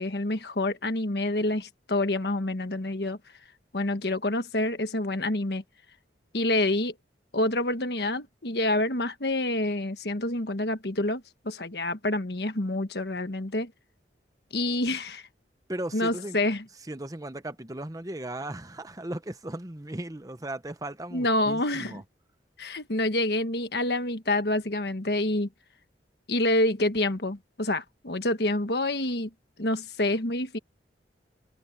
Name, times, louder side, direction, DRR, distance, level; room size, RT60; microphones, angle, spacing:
voice 1, 0.0-3.2 3.7-5.6 6.3-6.9 7.3-13.7 14.5-15.2 15.9-16.6 21.1-22.0 22.6-25.5 26.3-29.3 29.6-30.6, left 1 dB, 60° left, 1.5 m, -27 dB
voice 2, 15.7-16.4 16.9-22.0, right 1 dB, 20° right, 1.0 m, -36 dB
head